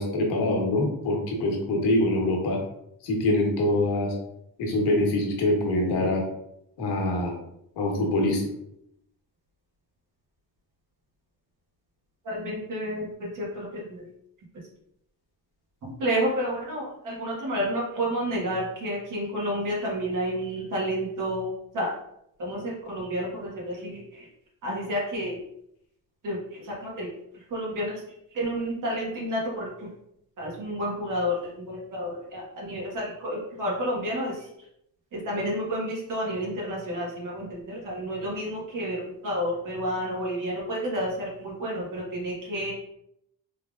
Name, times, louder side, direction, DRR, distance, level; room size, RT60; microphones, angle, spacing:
voice 1, 0.0-2.6 3.0-4.1 4.6-6.2 6.8-7.4 7.8-8.4, left 1 dB, 85° left, 0 dB, 1.2 m, -24 dB
voice 2, 12.2-14.0 15.8-21.9 22.4-24.3 24.6-25.4 26.2-27.1 27.5-28.0 28.3-29.9 30.4-34.5 35.1-42.7, equal, 50° right, -4 dB, 1.5 m, -30 dB
3.5 x 3.3 x 2.4 m, 0.76 s
cardioid pair, 130°, 39 cm